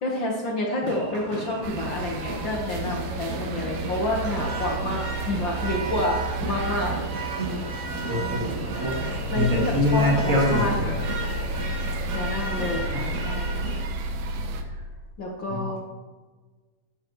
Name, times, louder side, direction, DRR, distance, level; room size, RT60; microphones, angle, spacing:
voice 1, 0.0-7.0 8.1-8.7 9.3-11.0 12.1-13.6 15.2-15.8, left 2 dB, 70° left, -1 dB, 1.1 m, -29 dB
sound 1, 0.8-13.8, right 2 dB, 55° right, 3.7 m, -34 dB
sound 2, 1.6-14.6, right 2 dB, 80° right, 2.8 m, -31 dB
voice 2, 7.4-7.7 8.1-10.9 12.9-13.0 15.5-15.8, left 1 dB, 20° right, -6 dB, 3.4 m, -25 dB
14.5 x 11.0 x 3.1 m, 1.3 s
omnidirectional pair, 4.2 m